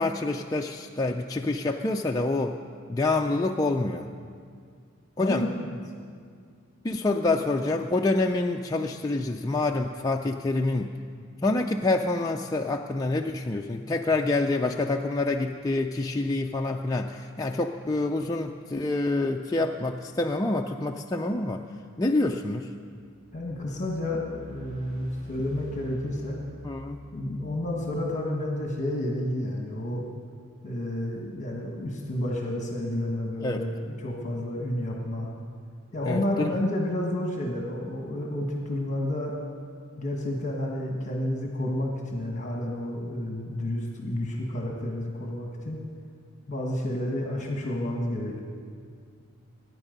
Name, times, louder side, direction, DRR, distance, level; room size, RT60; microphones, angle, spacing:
voice 1, 0.0-2.6 2.9-4.1 5.2-5.5 6.8-10.9 11.4-21.6 22.0-22.7 26.6-27.0 33.4-33.6 36.0-36.5, left 2 dB, 15° left, 1 dB, 0.4 m, -27 dB
voice 2, 5.2-5.8 23.3-26.4 27.1-30.0 30.6-35.3 35.9-39.4 40.0-45.8 46.5-48.4, left 1 dB, 35° left, -1 dB, 1.5 m, -30 dB
sound 1, 22.9-29.1, left 2 dB, 40° right, 2.1 m, -48 dB
22.0 x 9.9 x 5.3 m, 2.1 s
head